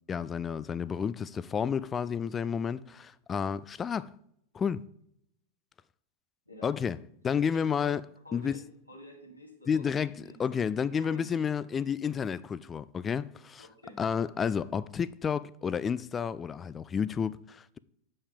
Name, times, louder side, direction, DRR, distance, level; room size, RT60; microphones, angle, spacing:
voice 1, 0.1-4.1 4.5-4.8 6.6-7.0 7.2-8.0 8.3-8.5 9.7-13.6 14.0-17.8, left 7 dB, 20° left, 0.3 m, -31 dB
voice 2, 8.2-8.6 8.9-9.8 10.1-10.4 10.9-11.3 13.6-14.0, left 1 dB, 85° left, 2.0 m, -49 dB
8.2 x 5.5 x 5.2 m
figure-of-eight pair, 90°, 0 cm